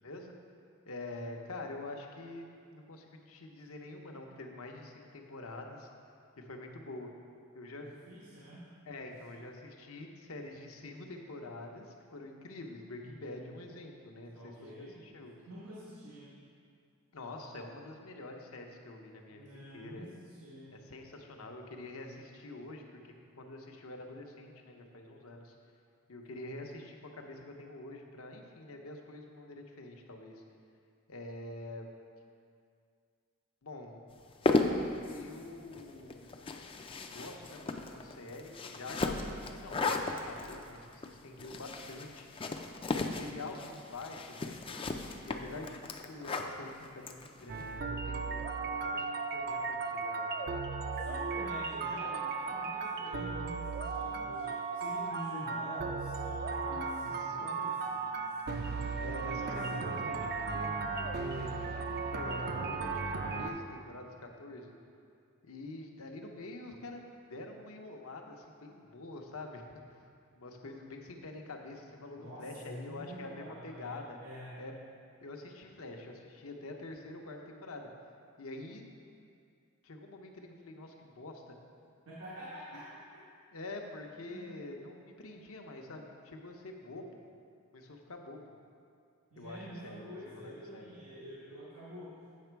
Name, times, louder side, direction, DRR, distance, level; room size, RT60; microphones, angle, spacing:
voice 1, 0.0-0.3 0.9-5.9 6.4-7.1 7.5-7.9 8.9-15.3 17.1-20.1 20.7-23.0 23.4-25.5 26.1-30.4 31.1-31.9 33.6-34.0 35.1-36.3 37.1-42.3 43.2-44.6 45.2-49.1 49.3-50.6 56.7-57.5 59.0-61.5 62.1-64.7 65.4-67.0 67.3-69.6 70.4-74.2 74.6-74.7 75.2-77.9 78.4-78.8 79.8-81.6 82.7-82.8 83.5-87.2 87.7-88.5 89.4-90.9, left 2 dB, 75° left, 2 dB, 0.8 m, -46 dB
voice 2, 7.7-8.7 13.0-13.4 14.3-15.0 15.5-16.3 19.3-20.7 51.0-58.4 59.0-59.9 72.2-74.6 82.0-83.3 84.3-84.5 89.3-92.1, equal, 90° right, -7 dB, 1.3 m, -47 dB
sound 1, 34.2-47.7, left 3 dB, 25° left, 0.4 m, -36 dB
sound 2, 47.5-63.5, right 4 dB, 50° right, 0.5 m, -36 dB
8.4 x 6.0 x 4.5 m, 2.3 s
head